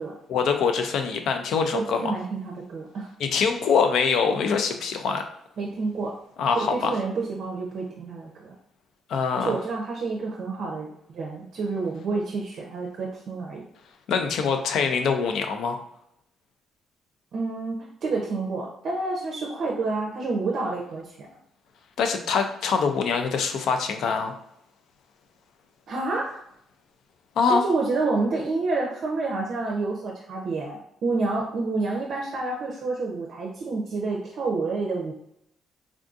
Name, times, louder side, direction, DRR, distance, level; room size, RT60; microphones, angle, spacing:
voice 1, 0.3-2.2 3.2-5.2 6.4-7.0 9.1-9.5 14.1-15.8 22.0-24.4 27.4-27.6, left 5 dB, 75° left, 6 dB, 0.4 m, -24 dB
voice 2, 1.7-3.1 5.6-6.2 6.5-8.5 9.3-13.6 17.3-21.3 25.9-26.4 27.5-35.1, right 3 dB, 60° right, -2 dB, 0.5 m, -29 dB
3.6 x 2.6 x 2.4 m, 0.73 s
cardioid pair, 120°, 0 cm